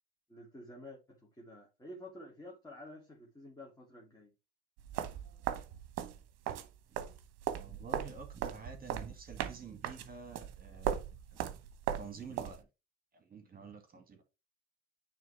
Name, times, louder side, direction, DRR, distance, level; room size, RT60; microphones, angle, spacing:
voice 1, 0.3-4.3, left 1 dB, 10° left, 2.3 m, -50 dB
sound 1, 4.8-6.7 7.0-12.6, right 10 dB, 50° right, 1.0 m, -38 dB
voice 2, 7.5-11.0 12.0-12.7 13.1-14.2, right 5 dB, 25° right, 2.2 m, -49 dB
9.2 x 3.6 x 3.3 m
hypercardioid pair, 70°, 32 cm